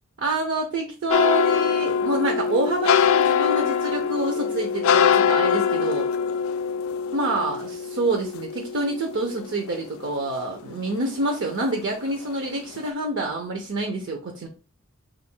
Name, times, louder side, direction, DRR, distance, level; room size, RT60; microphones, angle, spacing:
voice 1, 0.2-6.1 7.1-14.5, right 2 dB, 65° right, 2 dB, 0.6 m, -27 dB
sound 1, 1.1-10.3 10.7-11.7 12.1-12.4 12.8-12.9, left 7 dB, 80° left, 0.3 m, -23 dB
3.1 x 2.5 x 4.4 m, 0.36 s
head